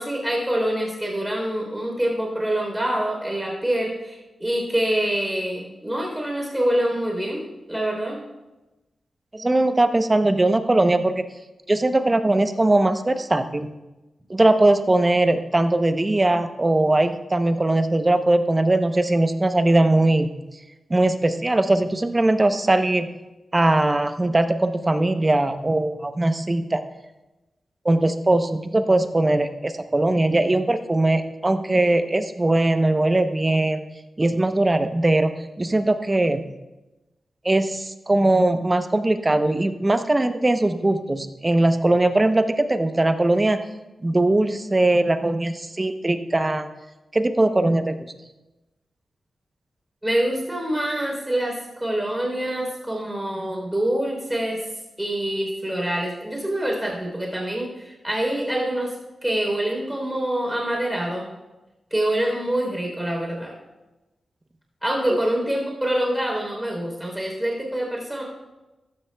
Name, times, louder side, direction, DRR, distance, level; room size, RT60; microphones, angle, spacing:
voice 1, 0.0-8.2 50.0-54.6 55.0-59.0 59.2-61.3 61.9-63.5 64.8-68.2, right 1 dB, 10° right, 0 dB, 3.5 m, -25 dB
voice 2, 9.3-11.2 11.7-13.7 14.3-20.3 20.9-23.1 23.5-26.8 27.8-33.8 34.2-36.4 37.4-43.6 44.0-46.7 47.1-47.9 65.1-65.2, right 2 dB, 25° right, 9 dB, 0.8 m, -20 dB
15.0 x 12.5 x 2.3 m, 1.1 s
cardioid pair, 70°, 0 cm